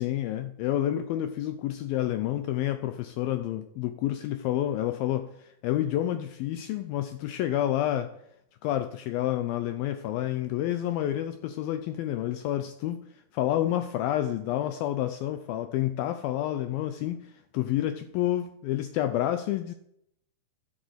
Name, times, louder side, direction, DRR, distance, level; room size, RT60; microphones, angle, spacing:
voice 1, 0.0-8.1 8.6-19.7, left 12 dB, 90° left, 10 dB, 2.1 m, -29 dB
12.0 x 7.9 x 7.9 m, 0.76 s
omnidirectional pair, 5.0 m